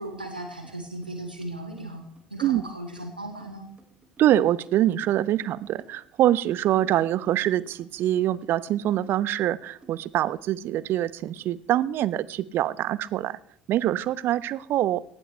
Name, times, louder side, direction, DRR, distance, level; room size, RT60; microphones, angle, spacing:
voice 1, 0.0-2.0 2.3-3.7, right 1 dB, 90° right, 3 dB, 3.3 m, -36 dB
sound 1, 0.6-0.8 1.0-10.2, right 3 dB, 25° right, 3.5 m, -57 dB
voice 2, 4.2-13.4 13.7-15.0, right 12 dB, 50° right, 19 dB, 0.8 m, -24 dB
19.0 x 16.5 x 3.3 m, 0.70 s
figure-of-eight pair, 60°, 5 cm